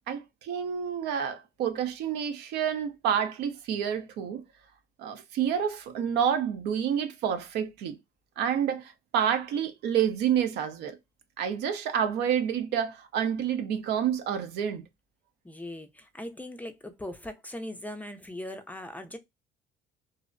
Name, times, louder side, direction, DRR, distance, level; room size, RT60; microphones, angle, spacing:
voice 1, 0.1-4.4 5.0-8.0 8.4-11.0 11.4-14.8, right 8 dB, 80° right, 0.5 m, -29 dB
voice 2, 15.4-19.2, left 1 dB, 10° left, 0.4 m, -40 dB
2.5 x 2.0 x 2.4 m
cardioid pair, 110°, 17 cm